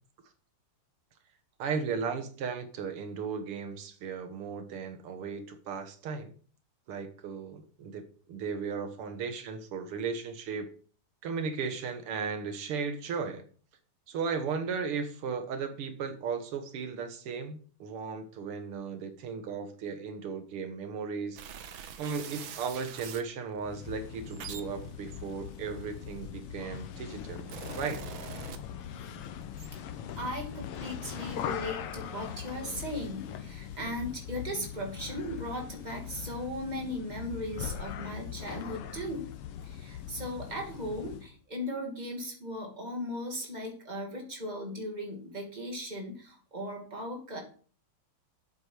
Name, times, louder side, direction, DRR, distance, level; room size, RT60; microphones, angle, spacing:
voice 1, 1.6-6.3 6.9-10.7 11.2-13.4 14.1-21.4 22.0-27.5 27.8-28.0, right 5 dB, 85° right, 7 dB, 2.1 m, -36 dB
sound 1, 21.4-23.3 24.0-26.4 27.1-29.1 29.4-29.7, right 8 dB, 70° right, 1.7 m, -44 dB
sound 2, 23.6-41.3, left 9 dB, 85° left, 1.8 m, -41 dB
voice 2, 30.2-39.3 39.6-47.4, equal, 20° right, 1 dB, 2.6 m, -37 dB
8.1 x 8.0 x 4.8 m, 0.42 s
omnidirectional pair, 2.4 m